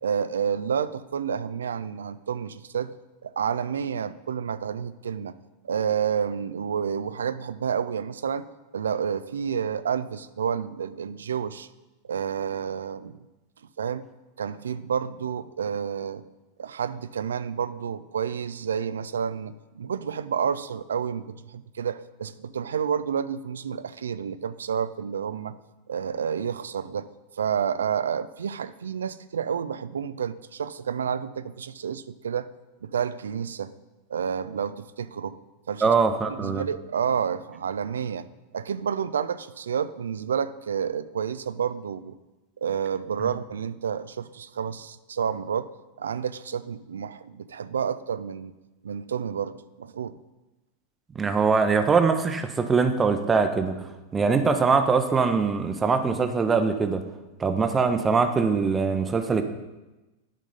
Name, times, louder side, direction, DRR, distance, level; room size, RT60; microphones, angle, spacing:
voice 1, 0.0-2.9 3.2-5.3 5.6-8.4 8.7-11.7 12.1-13.2 13.8-14.0 14.4-16.2 16.6-25.5 25.9-27.1 27.4-32.5 32.8-33.7 34.1-35.4 35.7-35.9 36.3-38.3 38.5-42.1 42.6-45.7 46.0-48.5 48.8-50.2, right 7 dB, 65° right, 14 dB, 0.3 m, -29 dB
voice 2, 35.8-36.6 51.1-57.0 57.4-59.4, right 5 dB, 15° right, 7 dB, 0.7 m, -22 dB
11.0 x 3.8 x 5.4 m, 1.1 s
figure-of-eight pair, 90°, 0 cm